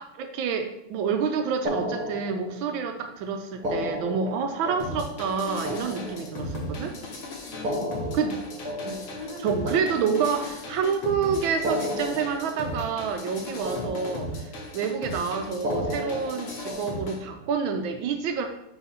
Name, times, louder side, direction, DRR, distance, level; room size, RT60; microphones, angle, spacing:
voice 1, 0.0-6.9 7.7-8.4 8.8-9.1 9.4-18.5, right 6 dB, 75° right, 6 dB, 1.3 m, -28 dB
sound 1, 1.6-2.9 3.5-6.8 7.5-10.8 11.5-13.4 13.6-14.7 15.5-17.3, equal, 25° right, 1.3 m, -34 dB
sound 2, 4.8-17.2, left 1 dB, 70° left, 2.0 m, -37 dB
voice 2, 6.7-8.4 9.1-9.7 13.4-13.5, equal, 35° left, -4 dB, 0.4 m, -42 dB
4.6 x 4.4 x 5.5 m, 0.85 s
omnidirectional pair, 2.4 m